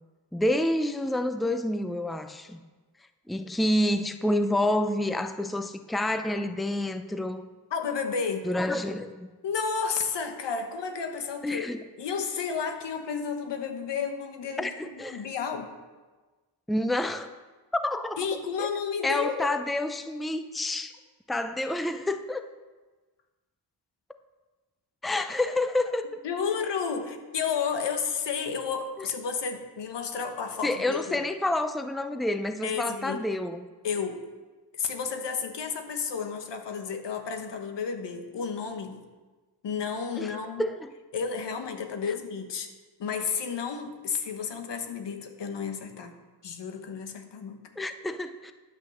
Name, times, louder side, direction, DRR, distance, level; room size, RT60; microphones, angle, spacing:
voice 1, 0.3-2.6 3.3-7.4 8.5-9.1 11.4-11.8 14.6-15.2 16.7-17.3 17.7-18.2 18.6-18.7 19.0-20.9 21.3-22.5 25.0-26.1 30.6-33.6 40.2-40.3 40.6-40.9 47.8-48.5, left 1 dB, ahead, 0.6 m, -28 dB
voice 2, 7.7-8.5 9.4-11.7 12.0-15.7 18.2-19.5 26.2-31.3 32.6-33.2 33.8-34.2 34.7-39.0 39.6-40.6 41.1-42.7 43.0-46.1 46.4-47.7, left 6 dB, 80° left, 1.3 m, -32 dB
10.5 x 6.1 x 7.1 m
cardioid pair, 80°, 41 cm